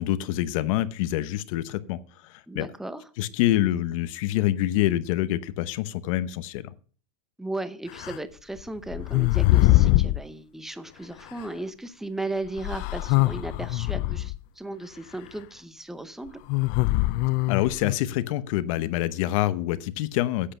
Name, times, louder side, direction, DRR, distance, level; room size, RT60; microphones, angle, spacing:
voice 1, 0.0-2.0 2.2-2.7 3.2-6.7 17.5-20.5, left 14 dB, 55° left, 14 dB, 0.9 m, -26 dB
voice 2, 2.5-3.0 7.4-16.4, right 2 dB, ahead, 12 dB, 0.8 m, -36 dB
sound 1, 8.0-8.2 8.9-10.2 11.4-11.5 12.6-14.4 16.5-18.0, left 18 dB, 40° left, 0.5 m, -22 dB
10.5 x 8.7 x 5.6 m, 0.42 s
supercardioid pair, 135°, 20 cm